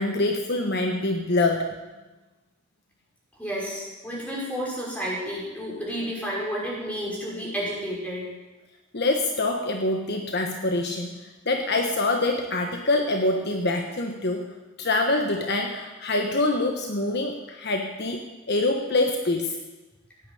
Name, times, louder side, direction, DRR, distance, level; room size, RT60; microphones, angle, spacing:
voice 1, 0.0-1.7 8.9-11.1 11.4-14.5 14.8-19.6, left 2 dB, 50° left, 3 dB, 1.3 m, -25 dB
voice 2, 3.4-8.3, equal, 5° left, -4 dB, 5.7 m, -31 dB
16.0 x 10.0 x 8.5 m, 1.1 s
head